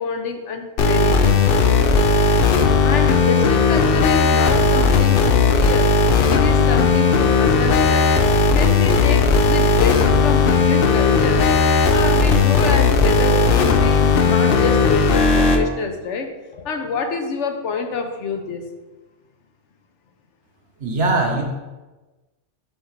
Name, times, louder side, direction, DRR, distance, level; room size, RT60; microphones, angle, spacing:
voice 1, 0.0-1.5 2.8-5.9 6.3-8.1 8.5-11.5 11.9-16.3 16.5-18.7, left 4 dB, 80° left, 5 dB, 1.1 m, -27 dB
sound 1, 0.8-15.6, left 4 dB, 60° left, 0.7 m, -16 dB
voice 2, 20.8-21.4, right 2 dB, 80° right, 0 dB, 1.5 m, -20 dB
10.5 x 3.7 x 3.2 m, 1.2 s
omnidirectional pair, 1.2 m